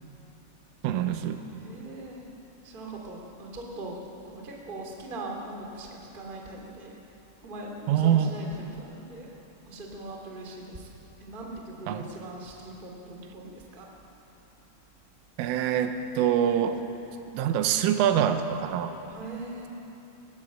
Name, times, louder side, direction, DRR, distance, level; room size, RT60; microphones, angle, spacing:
voice 1, 0.8-1.4 7.9-8.3 11.9-12.1 15.4-16.8 17.3-18.9, right 9 dB, 85° right, 8 dB, 3.5 m, -25 dB
voice 2, 1.5-2.2 2.6-4.0 4.3-7.0 7.4-9.3 9.6-10.9 11.2-13.9 19.1-19.7, right 2 dB, 15° right, 0 dB, 1.7 m, -40 dB
19.0 x 18.5 x 7.8 m, 3.0 s
omnidirectional pair, 5.7 m